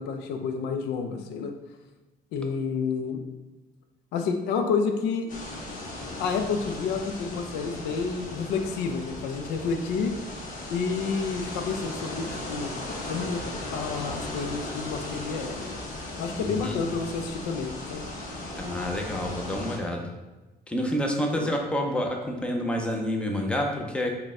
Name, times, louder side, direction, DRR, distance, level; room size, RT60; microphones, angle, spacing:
voice 1, 0.0-1.5 2.3-3.2 4.1-5.3 6.2-10.1 10.7-12.8 13.1-13.4 13.7-15.7 16.2-18.0 21.3-21.5, left 5 dB, 85° left, 6 dB, 0.4 m, -29 dB
sound 1, 5.3-19.8, left 2 dB, 50° left, 0.9 m, -37 dB
voice 2, 16.4-16.8 18.6-20.1 20.7-24.1, equal, 5° left, 1 dB, 0.5 m, -28 dB
4.0 x 2.2 x 3.6 m, 1.1 s
cardioid pair, 110°, 17 cm